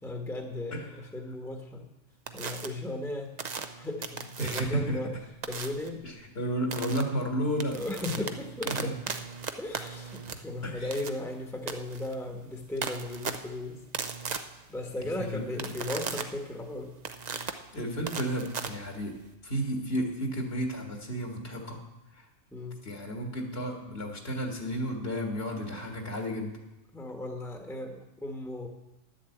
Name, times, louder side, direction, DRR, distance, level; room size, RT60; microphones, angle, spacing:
voice 1, 0.0-1.9 2.3-3.4 3.8-5.2 5.5-6.1 7.7-8.9 9.6-13.8 14.7-16.9 22.5-22.8 26.9-28.7, left 1 dB, ahead, 3 dB, 1.2 m, -36 dB
sound 1, 2.3-2.7 3.4-4.9 5.4-5.9 6.7-7.0 7.4-19.3, right 5 dB, 40° right, 0.7 m, -37 dB
voice 2, 4.4-5.0 6.0-7.8 8.7-8.9 10.6-10.9 15.0-15.7 17.7-19.2 19.4-21.8 22.1-22.3 22.8-26.6, equal, 50° left, 2 dB, 2.0 m, -32 dB
11.0 x 7.5 x 8.0 m, 0.98 s
omnidirectional pair, 1.3 m